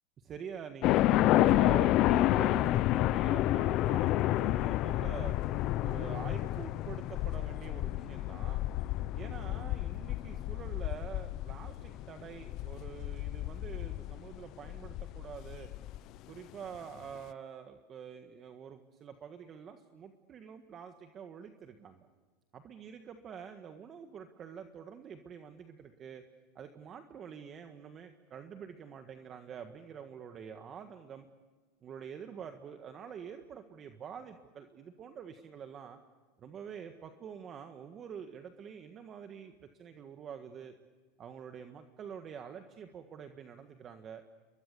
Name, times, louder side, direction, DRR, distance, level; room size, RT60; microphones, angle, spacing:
voice 1, 0.2-5.4 5.8-8.6 9.1-15.7 16.3-22.1 22.5-26.2 26.5-31.3 31.8-36.0 36.4-40.8 41.2-44.2, right 7 dB, 30° right, 7 dB, 1.6 m, -46 dB
sound 1, 0.8-16.0, left 15 dB, 45° left, 0.7 m, -30 dB
30.0 x 22.5 x 6.9 m, 1.4 s
supercardioid pair, 130°, 0 cm